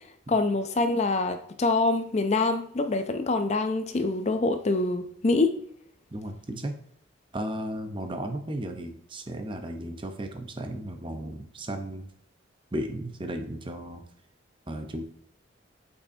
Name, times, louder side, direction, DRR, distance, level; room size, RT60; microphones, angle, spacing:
voice 1, 0.3-5.6, left 3 dB, 35° left, 8 dB, 0.4 m, -25 dB
voice 2, 6.1-6.8 7.3-12.1 12.7-14.0 14.7-15.0, right 1 dB, 25° right, 6 dB, 0.7 m, -35 dB
7.0 x 5.4 x 2.7 m, 0.66 s
head